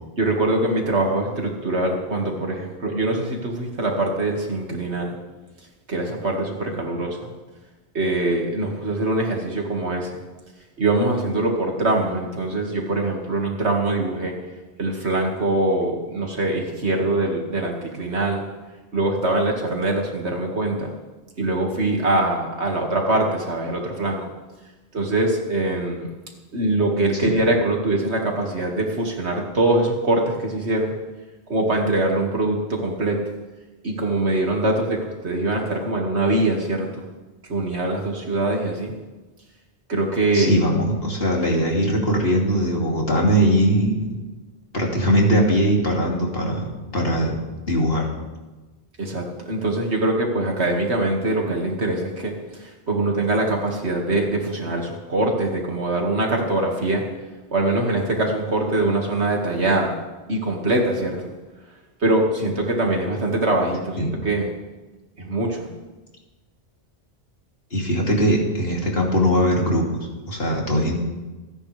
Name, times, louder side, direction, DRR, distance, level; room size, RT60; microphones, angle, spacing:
voice 1, 0.2-5.1 5.9-7.2 7.9-10.2 10.8-14.3 14.8-18.4 18.9-20.9 21.4-24.2 24.9-26.1 26.5-30.9 31.5-33.2 33.8-37.0 37.5-38.9 39.9-40.6 49.0-52.3 52.6-57.0 57.5-59.9 60.3-61.3 62.0-64.5 65.2-65.7, right 2 dB, 70° right, 1 dB, 2.5 m, -23 dB
voice 2, 40.3-44.0 44.7-46.7 46.9-47.3 47.7-48.1 64.0-64.1 67.7-69.9 70.3-70.9, equal, 55° left, -1 dB, 2.9 m, -20 dB
27.5 x 10.0 x 3.4 m, 1.2 s
omnidirectional pair, 1.2 m